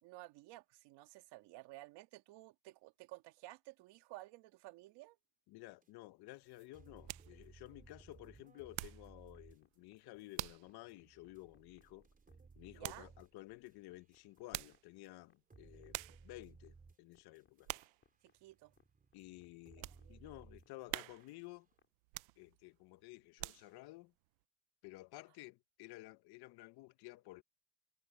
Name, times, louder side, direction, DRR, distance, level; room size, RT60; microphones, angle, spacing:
voice 1, 0.0-5.2 12.7-13.1 18.2-18.7 19.8-20.2, right 19 dB, 70° right, 2.4 m, -54 dB
voice 2, 5.5-12.1 12.6-17.7 19.1-21.7 22.4-24.1 24.8-27.4, left 19 dB, 60° left, 1.2 m, -54 dB
sound 1, 5.8-5.9 6.3-14.6 15.0-15.1 15.5-17.9 18.3-21.6, right 4 dB, 20° right, 6.0 m, -61 dB
sound 2, 6.4-9.2 9.5-9.8 10.4-10.7 11.2-11.3 12.8-13.1 14.3-14.9 15.5-15.6 15.9-16.3 16.8-17.1 17.7-18.0 18.5-18.6 19.2-20.0 20.5-20.6 20.9-21.5 22.0-22.7 23.1-23.9 24.4-24.5, right 26 dB, 85° right, 0.7 m, -46 dB
sound 3, 9.0-21.9, left 6 dB, 30° left, 6.0 m, -73 dB
supercardioid pair, 115°, 43 cm